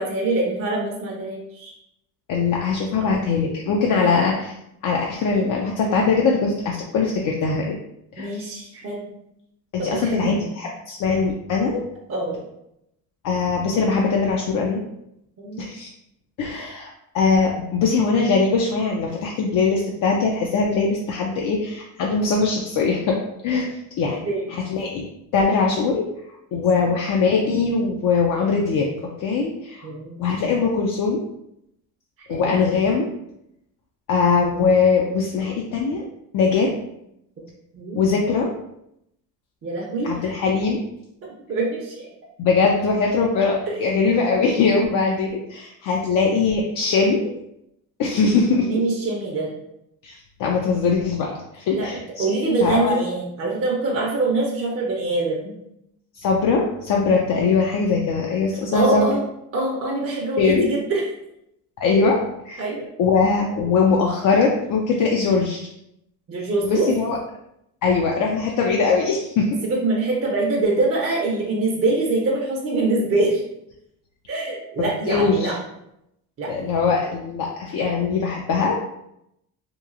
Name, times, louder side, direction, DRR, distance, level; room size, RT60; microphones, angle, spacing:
voice 1, 0.0-1.7 3.0-3.2 4.0-4.1 8.2-9.0 9.8-10.6 12.1-12.4 15.4-15.6 24.0-24.4 26.5-26.6 29.8-30.2 32.2-32.5 37.7-38.0 39.6-40.3 41.2-42.1 43.7-44.1 48.7-49.5 51.7-51.9 52.2-55.5 58.7-59.2 59.5-61.0 61.9-62.0 62.6-62.9 66.3-66.9 69.6-73.4 74.3-75.6 76.4-76.5, right 2 dB, 30° right, -3 dB, 0.6 m, -24 dB
voice 2, 2.3-4.5 4.8-7.8 8.2-8.5 9.7-11.8 13.2-14.8 15.6-15.9 16.4-23.2 23.4-24.2 24.7-25.0 25.3-26.1 26.5-28.9 29.2-29.9 30.2-31.2 32.3-33.1 34.1-36.0 36.3-36.7 37.9-38.5 40.0-40.8 42.4-47.3 48.0-48.7 50.0-53.0 56.1-59.1 60.4-60.7 61.8-62.2 62.5-62.6 63.0-65.7 66.6-67.2 67.8-69.5 75.1-75.5 76.5-78.8, left 4 dB, 50° left, -1 dB, 0.4 m, -21 dB
2.9 x 2.3 x 2.4 m, 0.81 s
cardioid pair, 95°, 43 cm